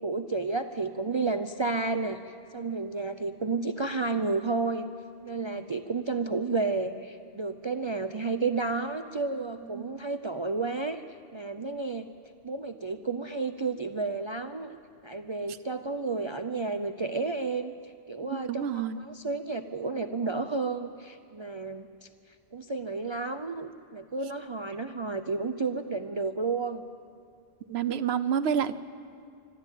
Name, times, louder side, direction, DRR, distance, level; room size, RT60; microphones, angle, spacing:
voice 1, 0.0-4.9 5.2-11.0 11.3-12.1 12.4-14.8 15.0-22.1 22.5-26.9, right 3 dB, 35° right, 9 dB, 0.5 m, -31 dB
voice 2, 18.3-19.0 27.7-28.8, right 8 dB, 75° right, 12 dB, 1.0 m, -28 dB
26.0 x 12.5 x 9.0 m, 2.3 s
omnidirectional pair, 1.1 m